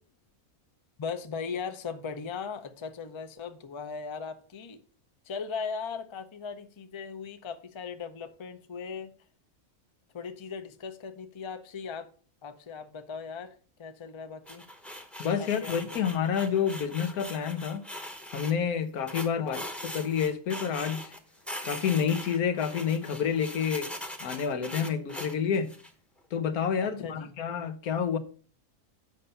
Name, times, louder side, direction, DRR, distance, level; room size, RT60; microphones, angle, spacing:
voice 1, 1.0-4.8 5.2-9.1 10.1-12.1 12.4-14.7 15.4-16.0 19.4-19.6 26.8-27.3, left 5 dB, 30° left, 0.5 m, -38 dB
sound 1, 14.5-18.5 19.1-21.2 21.5-25.9, equal, ahead, 0.8 m, -41 dB
voice 2, 15.2-17.8 18.3-19.6 19.9-21.1 21.6-23.9 24.2-25.7 26.3-28.2, left 7 dB, 90° left, 1.3 m, -29 dB
8.2 x 5.5 x 5.4 m
omnidirectional pair, 1.5 m